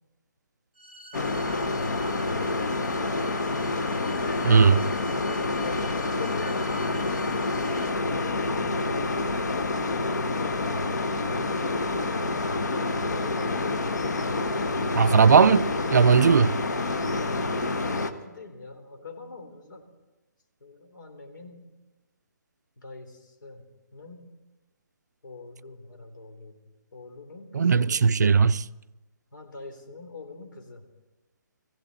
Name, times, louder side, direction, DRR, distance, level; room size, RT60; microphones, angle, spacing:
sound 1, 0.8-7.9, right 3 dB, ahead, 0.7 m, -47 dB
sound 2, 1.1-18.1, left 3 dB, 65° left, 1.1 m, -28 dB
voice 1, 4.4-4.9 14.9-16.6 27.5-28.7, right 5 dB, 65° right, 0.4 m, -18 dB
voice 2, 5.2-6.8 7.9-9.6 14.1-15.0 17.5-19.8 20.6-21.6 22.8-23.6 23.9-24.3 25.2-26.5 26.9-28.1 29.3-30.9, left 3 dB, 90° left, 3.5 m, -45 dB
18.5 x 16.0 x 4.0 m
hypercardioid pair, 180°, 10 cm